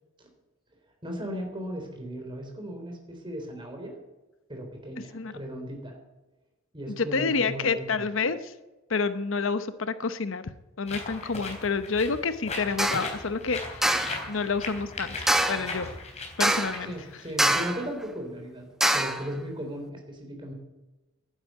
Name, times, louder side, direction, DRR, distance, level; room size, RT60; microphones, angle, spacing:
voice 1, 1.0-3.9 4.5-6.0 6.7-8.1 15.5-15.7 16.8-18.7 18.9-20.5, equal, 25° right, 3 dB, 3.6 m, -37 dB
voice 2, 6.9-8.5 8.9-10.4 10.8-13.9 14.3-15.9 16.4-16.9, left 4 dB, 65° left, 12 dB, 0.8 m, -28 dB
sound 1, 10.9-17.8, left 3 dB, 30° left, 3.7 m, -38 dB
sound 2, 12.8-13.1 13.8-14.2 15.3-15.7 16.4-16.8 17.4-17.8 18.8-19.2, right 1 dB, ahead, 1.0 m, -24 dB
11.5 x 10.0 x 9.3 m, 1.1 s
head